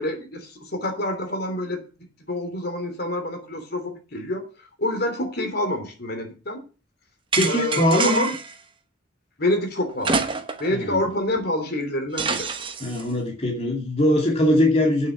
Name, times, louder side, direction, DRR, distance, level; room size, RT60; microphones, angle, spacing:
voice 1, 0.0-1.8 2.3-4.4 4.8-6.6 7.4-8.3 9.4-10.2 10.6-12.5, left 1 dB, 55° left, 5 dB, 3.1 m, -27 dB
sound 1, 7.3-8.5 10.0-10.8 11.1-11.2 12.2-13.0, right 4 dB, 25° right, 1.1 m, -26 dB
voice 2, 7.4-8.3 10.7-11.0 12.8-15.1, left 1 dB, 30° left, -1 dB, 2.6 m, -21 dB
9.1 x 6.9 x 7.3 m, 0.35 s
head